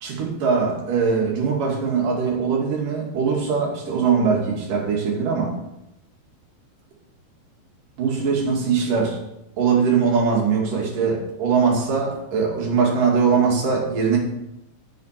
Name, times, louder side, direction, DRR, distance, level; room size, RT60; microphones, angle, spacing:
voice 1, 0.0-5.5 8.0-9.2 9.6-14.2, right 5 dB, 55° right, -2 dB, 3.9 m, -21 dB
10.5 x 7.6 x 5.8 m, 0.86 s
omnidirectional pair, 4.6 m